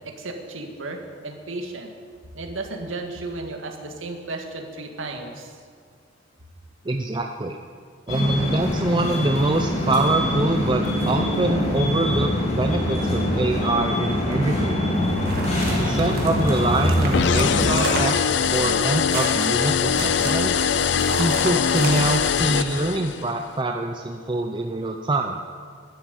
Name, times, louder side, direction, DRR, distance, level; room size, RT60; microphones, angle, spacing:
voice 1, 0.2-1.9 2.3-5.5, right 2 dB, 85° right, 3 dB, 1.8 m, -34 dB
voice 2, 6.8-7.6 8.1-15.1 15.7-20.7 21.2-25.4, right 2 dB, 25° right, 4 dB, 0.6 m, -25 dB
sound 1, 8.1-17.7, left 1 dB, 35° left, 2.8 m, -24 dB
sound 2, 15.0-22.6, right 2 dB, 50° right, 2.0 m, -33 dB
sound 3, 17.1-23.3, left 7 dB, 60° left, 0.4 m, -22 dB
12.0 x 10.5 x 8.2 m, 2.1 s
head